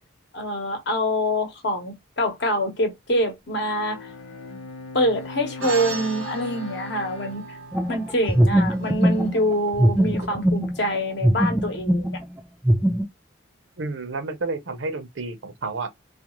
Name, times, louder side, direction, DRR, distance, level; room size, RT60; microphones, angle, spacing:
voice 1, 0.3-4.1 4.9-7.6 7.9-12.2, equal, 55° left, 0.9 m, -25 dB
Bowed string instrument, 3.6-9.1, left 3 dB, 90° left, 0.7 m, -40 dB
sound 1, 5.6-10.3, right 5 dB, 90° right, 0.9 m, -37 dB
sound 2, 7.7-11.0 11.2-12.2 12.6-13.0, equal, 5° right, 0.3 m, -21 dB
voice 2, 13.8-15.9, right 3 dB, 60° right, 0.6 m, -30 dB
2.4 x 2.3 x 2.9 m
head